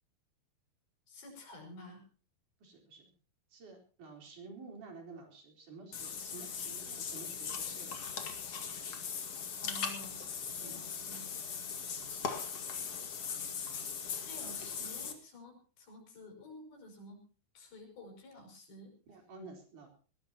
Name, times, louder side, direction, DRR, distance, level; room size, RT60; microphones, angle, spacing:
voice 1, 1.1-2.0 9.2-9.3 9.6-10.2 10.5-11.2 14.2-17.2 17.6-18.9, left 1 dB, 70° left, 3 dB, 7.2 m, -51 dB
voice 2, 2.6-3.1 3.5-8.3 10.6-10.8 19.1-19.9, right 3 dB, 50° right, 3 dB, 5.5 m, -51 dB
Water / Bathtub (filling or washing), 5.9-15.1, left 6 dB, 45° left, 2.5 m, -39 dB
20.5 x 17.0 x 3.0 m, 0.38 s
omnidirectional pair, 4.6 m